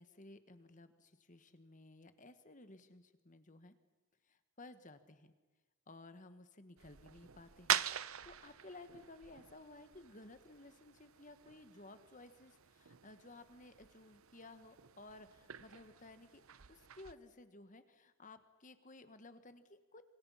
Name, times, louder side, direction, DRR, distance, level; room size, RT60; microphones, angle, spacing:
voice 1, 0.0-3.7 4.3-5.3 5.9-16.4 16.7-20.0, left 2 dB, 35° left, 10 dB, 1.5 m, -56 dB
sound 1, 6.8-17.1, right 10 dB, 85° right, 0.8 m, -44 dB
26.5 x 26.0 x 5.7 m, 1.3 s
head